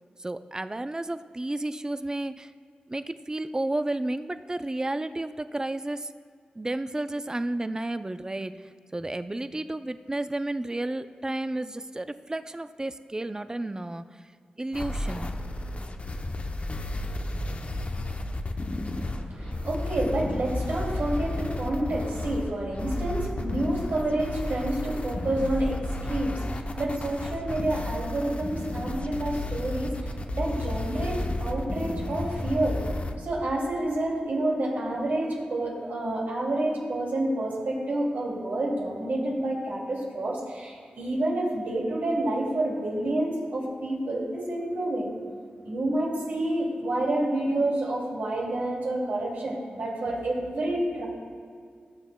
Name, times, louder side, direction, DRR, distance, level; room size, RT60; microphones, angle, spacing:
voice 1, 0.2-2.5 2.9-6.1 6.6-14.3 14.6-15.3, right 2 dB, 20° right, 11 dB, 0.4 m, -32 dB
sound 1, 14.7-33.1, left 1 dB, 45° left, 0.7 m, -32 dB
voice 2, 19.0-32.8 33.2-45.1 45.6-51.1, right 1 dB, 80° right, -3 dB, 2.5 m, -29 dB
17.5 x 7.2 x 2.2 m, 2.2 s
cardioid pair, 55°, 3 cm